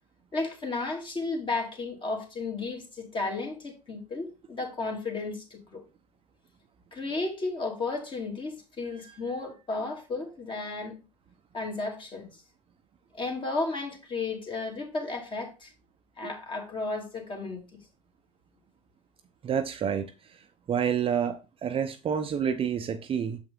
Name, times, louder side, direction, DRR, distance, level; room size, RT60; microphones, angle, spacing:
voice 1, 0.3-5.8 6.9-10.9 11.5-12.3 13.2-15.7 16.2-17.8, left 3 dB, 30° left, 2.6 m, -33 dB
voice 2, 19.4-20.4 20.7-23.4, right 8 dB, 30° right, 0.8 m, -29 dB
6.9 x 5.5 x 3.8 m
supercardioid pair, 100°, 17 cm